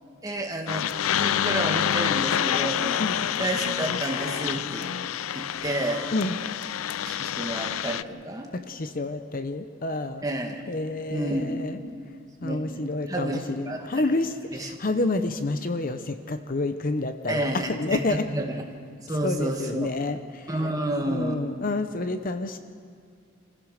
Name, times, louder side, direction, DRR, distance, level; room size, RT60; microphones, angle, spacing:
voice 1, 0.2-0.9 1.2-2.8 3.4-4.9 5.3-6.0 7.0-8.5 10.2-10.6 11.1-12.1 12.4-14.0 14.5-14.8 17.3-18.6 19.0-19.9 20.5-21.4, right 1 dB, 15° right, 1 dB, 1.8 m, -30 dB
sound 1, 0.7-8.0, left 9 dB, 85° left, 0.4 m, -27 dB
voice 2, 8.5-10.2 10.7-11.8 12.4-18.2 19.2-20.5 21.0-22.6, left 2 dB, 45° left, 9 dB, 0.7 m, -29 dB
27.5 x 15.5 x 6.5 m, 2.3 s
head